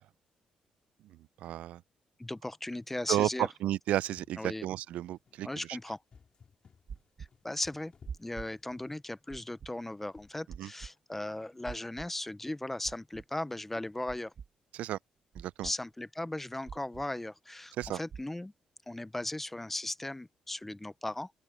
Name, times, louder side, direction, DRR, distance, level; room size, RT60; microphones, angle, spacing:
voice 1, 1.4-1.8 3.1-5.5 10.6-10.7 14.7-15.0 15.4-15.7 17.8-18.0, right 13 dB, 90° right, 0.3 m, -32 dB
voice 2, 2.2-3.5 4.4-4.7 5.4-6.0 7.4-7.9 8.2-14.3 15.6-18.5 18.9-21.3, left 1 dB, 10° left, 0.6 m, -37 dB
sound 1, 3.9-9.2 10.1-10.5, left 6 dB, 45° left, 2.1 m, -61 dB
sound 2, 6.9-7.3 8.1-8.5 9.3-9.7 10.5-10.9 11.6-12.1 12.8-13.2 14.1-14.5 15.3-15.7 16.7-17.1 17.8-18.2, right 6 dB, 50° right, 1.9 m, -44 dB
open air
cardioid pair, 115°, 2 cm